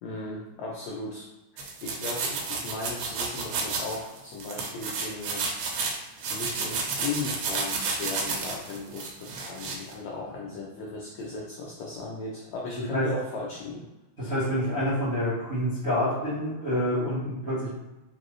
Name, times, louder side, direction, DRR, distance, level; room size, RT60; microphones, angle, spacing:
voice 1, 0.0-1.3 1.5-5.5 6.3-13.9, left 3 dB, 90° left, -3 dB, 1.5 m, -36 dB
sound 1, 1.6-9.9, right 4 dB, 90° right, 2.5 m, -31 dB
voice 2, 14.2-17.7, equal, 75° right, -11 dB, 0.5 m, -27 dB
5.2 x 2.6 x 3.0 m, 1.0 s
omnidirectional pair, 4.0 m